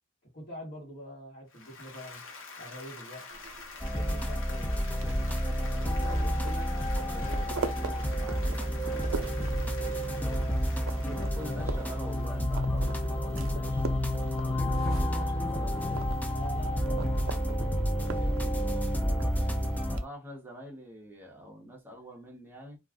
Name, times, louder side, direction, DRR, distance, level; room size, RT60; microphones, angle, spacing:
voice 1, 0.3-2.2 2.6-3.3 3.9-4.8 6.2-6.4 11.0-11.8 16.3-19.4, equal, 45° left, 1.3 m, -45 dB
Applause, 1.5-12.8, left 4 dB, 65° left, 0.9 m, -47 dB
sound 1, 3.3-20.1, right 4 dB, 65° right, 0.4 m, -43 dB
sound 2, 3.8-20.0, equal, 10° left, 0.3 m, -30 dB
voice 2, 6.0-10.6 11.2-13.8 14.4-16.1 19.9-22.8, right 1 dB, 10° right, 0.7 m, -47 dB
2.4 x 2.3 x 3.5 m
head